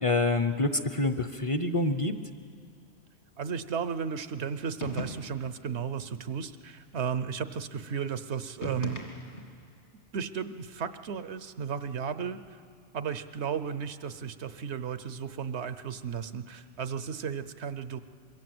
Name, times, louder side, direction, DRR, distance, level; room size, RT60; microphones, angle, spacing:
voice 1, 0.0-2.1, left 2 dB, 35° left, 9 dB, 0.7 m, -26 dB
voice 2, 3.4-9.0 10.1-12.6 12.9-18.0, right 7 dB, 80° right, 12 dB, 1.1 m, -34 dB
sound 1, 4.8-5.5 8.6-9.6, left 1 dB, 60° left, 2.4 m, -38 dB
25.0 x 22.5 x 7.8 m, 2.3 s
omnidirectional pair, 1.1 m